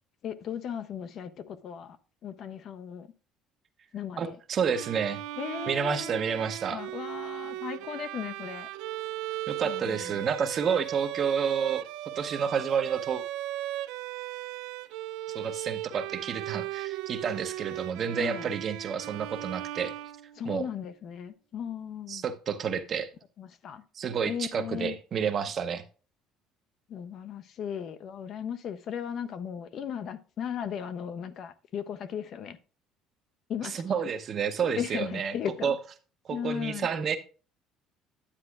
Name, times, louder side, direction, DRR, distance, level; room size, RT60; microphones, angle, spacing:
voice 1, 0.2-2.0 2.2-3.1 3.9-4.4 5.4-8.7 9.6-10.2 18.2-18.5 20.4-22.2 23.4-23.8 24.2-24.9 26.9-32.6 33.5-33.8 34.8-35.8 36.3-36.9, left 8 dB, 40° left, 0.5 m, -36 dB
voice 2, 4.2-5.2 5.7-6.8 9.5-11.9 12.2-13.2 15.3-19.9 20.4-20.7 22.1-23.1 24.0-25.8 33.6-35.3 35.6-35.7 36.3-37.2, right 6 dB, 30° right, 0.7 m, -30 dB
Bowed string instrument, 4.7-20.6, right 15 dB, 85° right, 0.4 m, -37 dB
9.8 x 8.6 x 2.3 m
cardioid pair, 175°, 0 cm